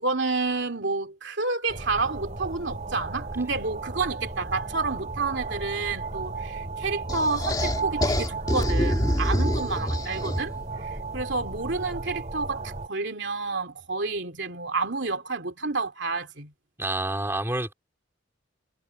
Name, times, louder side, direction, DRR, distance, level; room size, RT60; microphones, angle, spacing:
voice 1, 0.0-16.5, right 3 dB, 60° right, 3.1 m, -30 dB
sound 1, 1.7-12.9, right 4 dB, 35° right, 3.5 m, -34 dB
sound 2, 7.1-10.6, left 1 dB, 20° left, 2.6 m, -26 dB
voice 2, 16.8-17.7, right 2 dB, 10° right, 4.1 m, -28 dB
head